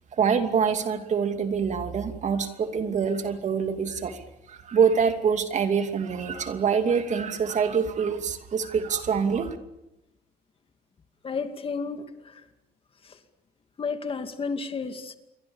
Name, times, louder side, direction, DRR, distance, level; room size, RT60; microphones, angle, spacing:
voice 1, 0.2-4.2 4.5-9.5, right 6 dB, 45° right, 7 dB, 2.7 m, -25 dB
voice 2, 11.2-12.4 13.0-13.2 13.8-15.2, left 5 dB, 35° left, 7 dB, 2.5 m, -32 dB
28.5 x 23.0 x 7.2 m, 0.91 s
cardioid pair, 110°, 17 cm